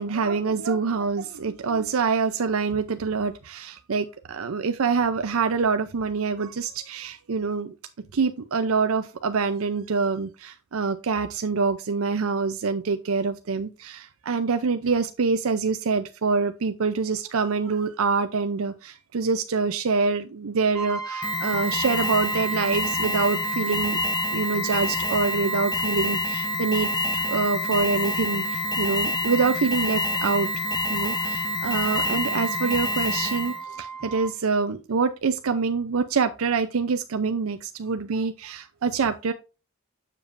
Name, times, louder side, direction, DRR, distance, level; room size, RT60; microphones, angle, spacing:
voice 1, 0.0-7.7 8.1-24.0 24.3-30.6 30.9-39.3, right 5 dB, 85° right, 0.5 m, -25 dB
Brass instrument, 20.7-34.4, right 5 dB, ahead, 1.9 m, -36 dB
Alarm, 21.2-33.6, left 2 dB, 20° left, 0.7 m, -27 dB
7.2 x 6.8 x 2.5 m
head